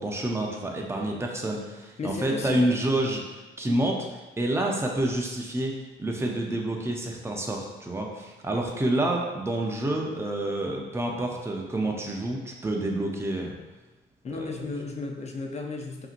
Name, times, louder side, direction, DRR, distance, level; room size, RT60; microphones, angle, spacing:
voice 1, 0.0-4.1 4.4-5.7 6.0-13.5 14.3-14.7, right 1 dB, 15° right, 0 dB, 0.6 m, -28 dB
voice 2, 2.0-2.7 14.2-16.1, left 3 dB, 35° left, 2 dB, 0.6 m, -34 dB
5.6 x 2.8 x 2.5 m, 1.2 s
cardioid pair, 100°, 20 cm